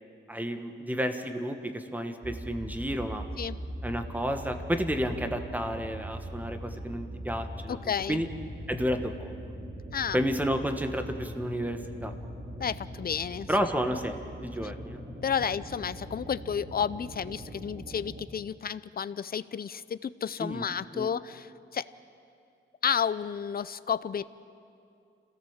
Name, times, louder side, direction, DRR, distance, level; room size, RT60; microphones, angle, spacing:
voice 1, 0.3-3.3 3.8-7.8 8.1-8.3 8.7-9.3 10.1-12.1 13.5-15.0 15.4-15.5 20.4-20.6 20.9-21.1, equal, 10° right, 6 dB, 1.3 m, -31 dB
sound 1, 2.2-18.2, equal, 35° right, 2.2 m, -41 dB
voice 2, 7.7-8.2 9.9-10.2 12.6-13.5 15.2-21.9 22.8-24.2, left 7 dB, 45° left, 16 dB, 0.5 m, -31 dB
26.5 x 17.0 x 7.3 m, 2.5 s
wide cardioid pair, 140°, 21 cm